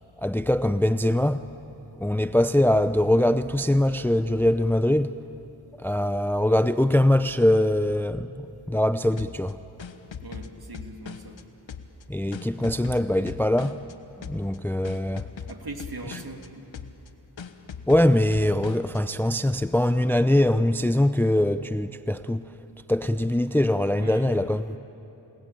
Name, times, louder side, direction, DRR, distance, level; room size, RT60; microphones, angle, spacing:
voice 1, 0.2-1.5 2.0-5.2 5.8-8.3 8.7-9.6 12.1-13.9 14.2-15.3 17.9-22.4 22.9-24.8, left 1 dB, 5° left, 0.6 m, -22 dB
sound 1, 9.2-11.4 11.7-13.9 14.2-14.6 14.8-16.5 16.7-17.1 17.4-19.0, left 6 dB, 70° left, 1.3 m, -40 dB
voice 2, 10.2-11.4 15.5-16.7 23.9-24.5, right 2 dB, 50° right, 2.8 m, -40 dB
29.0 x 20.0 x 9.1 m
cardioid pair, 40°, 47 cm